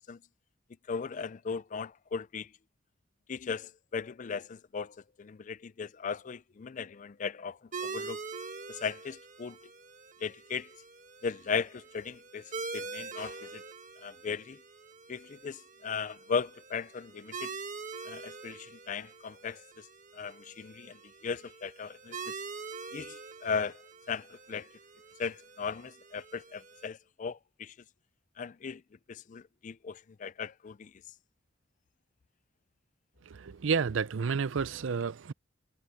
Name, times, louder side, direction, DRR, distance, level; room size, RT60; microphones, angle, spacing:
voice 1, 0.9-2.5 3.3-8.2 8.7-9.6 10.2-10.7 11.2-12.4 12.7-13.6 14.0-14.6 15.1-17.5 18.1-19.8 20.1-21.0 21.2-22.3 22.9-23.8 24.1-24.7 25.2-27.7 28.4-28.8 29.1-30.9, left 5 dB, 40° left, 0.4 m, -37 dB
sound 1, 7.7-26.9, right 4 dB, 40° right, 1.5 m, -44 dB
voice 2, 33.3-35.3, right 5 dB, 75° right, 0.5 m, -30 dB
head